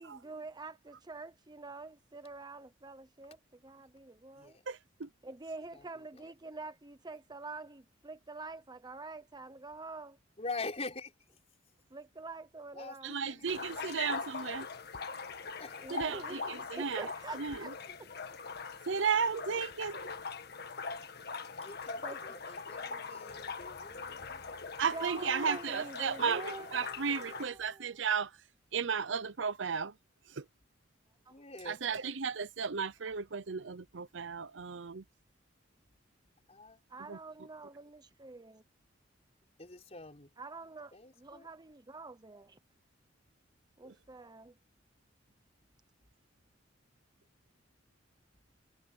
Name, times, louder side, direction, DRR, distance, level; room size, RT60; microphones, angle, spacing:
voice 1, 0.0-4.6 5.2-10.2 11.9-13.1 15.8-17.7 18.0-18.1 22.0-22.2 24.9-28.0 36.9-38.6 40.4-42.6 43.8-44.5, right 3 dB, 20° right, 0.9 m, -46 dB
voice 2, 4.7-5.1 13.0-14.7 15.9-17.1 17.4-17.6 18.9-20.1 24.8-28.3 28.7-29.9 30.4-30.5 31.7-35.0 37.1-37.2 43.8-43.9, right 6 dB, 75° right, 0.8 m, -34 dB
voice 3, 5.7-6.3 10.4-11.1 12.7-14.2 15.6-16.0 17.9-18.0 19.5-19.6 21.0-21.1 21.5-24.6 31.3-31.8 36.5-36.8 39.6-40.3 40.9-41.5, left 3 dB, 35° left, 4.0 m, -45 dB
sound 1, 13.5-27.5, left 4 dB, 60° left, 1.7 m, -42 dB
sound 2, 23.3-25.8, equal, 75° left, 6.4 m, -62 dB
head